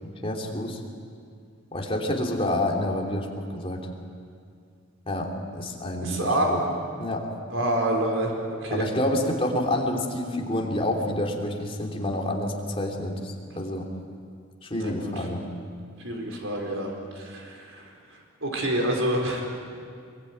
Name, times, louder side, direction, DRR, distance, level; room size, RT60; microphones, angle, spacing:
voice 1, 0.0-0.8 1.7-3.9 5.1-6.6 7.0-7.3 8.7-13.9 14.6-15.4, left 1 dB, 30° left, 1 dB, 3.1 m, -28 dB
voice 2, 6.0-6.5 7.5-8.3 8.6-8.8 14.7-15.3 16.0-17.8 18.4-19.4, right 1 dB, 85° right, 1 dB, 4.4 m, -27 dB
24.5 x 23.0 x 9.4 m, 2.2 s
head